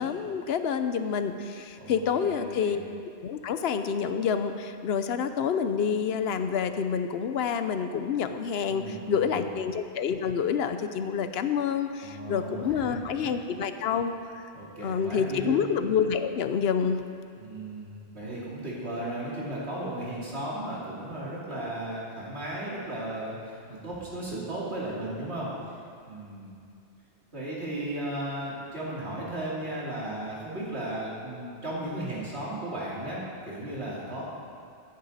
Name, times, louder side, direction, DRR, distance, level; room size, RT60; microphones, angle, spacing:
voice 1, 0.0-2.8 3.2-14.5 14.8-17.0, left 7 dB, 75° left, 9 dB, 0.9 m, -28 dB
voice 2, 1.8-2.7 8.7-9.5 12.0-13.0 14.5-15.6 17.4-25.5 26.1-26.5 27.3-34.2, right 1 dB, 80° right, -6 dB, 2.8 m, -35 dB
14.0 x 9.2 x 4.1 m, 2.3 s
omnidirectional pair, 1.1 m